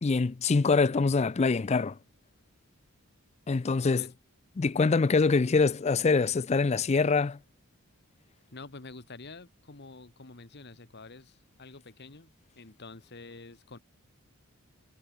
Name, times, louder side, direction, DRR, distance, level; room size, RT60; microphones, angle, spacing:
voice 1, 0.0-2.0 3.5-4.1 4.6-7.4, left 4 dB, 30° left, 0.4 m, -24 dB
voice 2, 8.5-13.8, left 3 dB, 50° left, 1.5 m, -48 dB
head